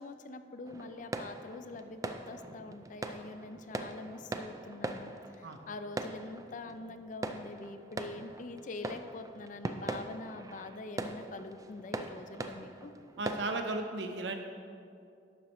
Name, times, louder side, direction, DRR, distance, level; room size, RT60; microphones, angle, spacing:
voice 1, 0.0-12.9, left 2 dB, 45° left, 10 dB, 0.4 m, -45 dB
sound 1, 0.7-13.8, right 2 dB, 20° right, 0.4 m, -42 dB
voice 2, 13.2-14.3, right 2 dB, 75° right, 5 dB, 0.8 m, -35 dB
11.5 x 8.6 x 3.1 m, 2.5 s
head